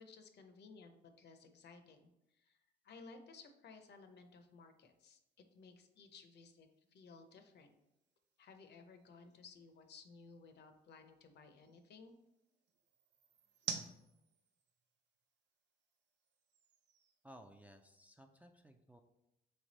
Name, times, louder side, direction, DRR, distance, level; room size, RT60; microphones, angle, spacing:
voice 1, 0.0-2.6 2.8-5.2 5.5-7.7 8.4-12.1, left 4 dB, 60° left, 7 dB, 0.6 m, -58 dB
sound 1, 3.9-18.1, right 6 dB, 60° right, 0.5 m, -54 dB
voice 2, 17.2-19.0, equal, 10° right, 4 dB, 0.3 m, -59 dB
3.5 x 3.3 x 4.0 m, 0.88 s
cardioid pair, 90°, 20 cm